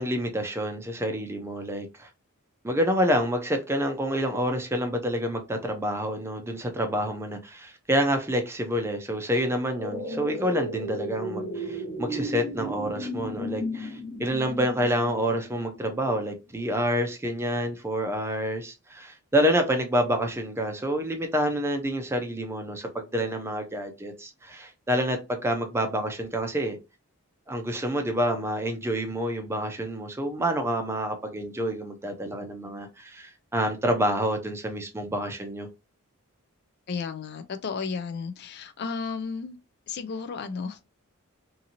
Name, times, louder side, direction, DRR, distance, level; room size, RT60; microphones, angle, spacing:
voice 1, 0.0-2.1 2.6-26.8 27.5-35.7, equal, 10° right, 0.5 m, -28 dB
sound 1, 9.8-15.9 16.3-16.4, equal, 15° left, 0.8 m, -34 dB
voice 2, 36.9-39.6 39.9-40.9, left 5 dB, 50° left, 0.4 m, -33 dB
2.7 x 2.6 x 2.8 m
head